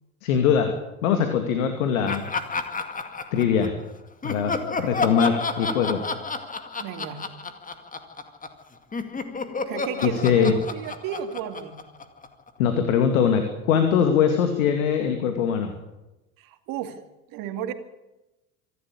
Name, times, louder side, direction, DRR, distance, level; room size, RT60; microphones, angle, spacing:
voice 1, 0.2-0.7 1.0-2.3 3.3-3.7 4.2-6.0 10.0-10.5 12.6-15.7, left 7 dB, 70° left, 6 dB, 2.5 m, -22 dB
Laughter, 2.1-3.8 4.2-8.6 8.9-12.5, left 4 dB, 20° left, 2.2 m, -31 dB
voice 2, 6.8-7.2 9.7-11.8 16.4-17.0 17.3-17.7, right 9 dB, 50° right, 7 dB, 2.5 m, -33 dB
25.5 x 12.5 x 8.7 m, 0.98 s
figure-of-eight pair, 70°, 42 cm